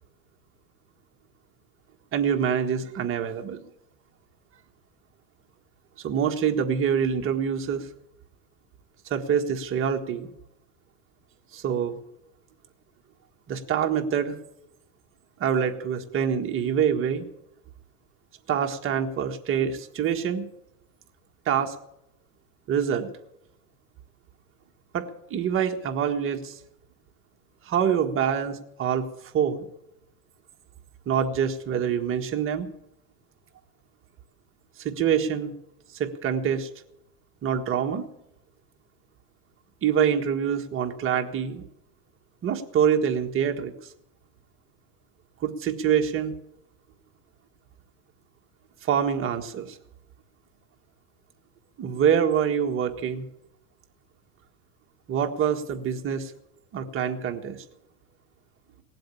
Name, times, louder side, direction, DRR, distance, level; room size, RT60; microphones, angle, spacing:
voice 1, 2.1-3.6 6.0-7.9 9.1-10.3 11.5-12.0 13.5-14.3 15.4-17.3 18.5-20.5 21.4-21.7 22.7-23.1 24.9-26.5 27.6-29.1 29.3-29.6 31.0-32.7 34.8-35.5 36.0-36.7 37.4-38.0 39.8-41.6 42.4-43.7 45.4-46.3 48.8-49.8 51.8-53.2 55.1-56.3 56.7-57.6, right 8 dB, 30° right, 4 dB, 1.6 m, -25 dB
18.5 x 7.8 x 8.5 m, 0.82 s
supercardioid pair, 130°, 40 cm